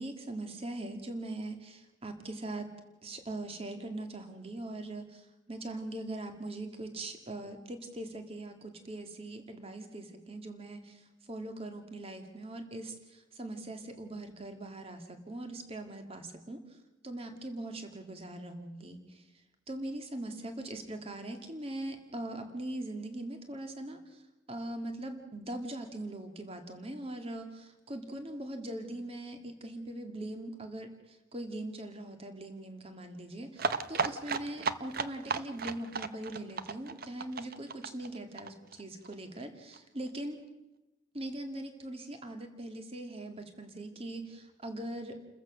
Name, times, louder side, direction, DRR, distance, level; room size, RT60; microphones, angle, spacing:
voice 1, 0.0-2.7 3.0-16.6 17.0-19.3 19.7-24.2 24.5-40.4 41.1-45.2, right 1 dB, 30° right, 6 dB, 2.2 m, -41 dB
sound 1, 33.6-39.1 39.4-39.5 39.7-39.8 40.1-40.2, right 5 dB, 50° right, 0.8 m, -34 dB
29.5 x 14.5 x 6.4 m, 1.0 s
head